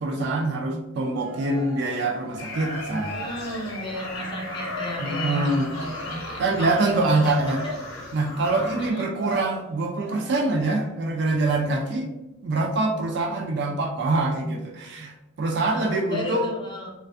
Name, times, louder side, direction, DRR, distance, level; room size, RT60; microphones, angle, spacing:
voice 1, 0.0-3.2 5.0-5.7 6.4-7.6 8.1-12.1 12.4-16.5, right 2 dB, 55° right, 2 dB, 0.4 m, -25 dB
Cheering, 1.1-11.2, right 2 dB, 85° right, 0.8 m, -39 dB
sound 1, 2.4-8.9, left 2 dB, 80° left, 0.6 m, -37 dB
voice 2, 3.1-7.4 7.6-7.7 8.8-9.1 15.5-16.9, left 1 dB, 25° left, -1 dB, 0.4 m, -34 dB
2.4 x 2.2 x 2.4 m, 0.97 s
head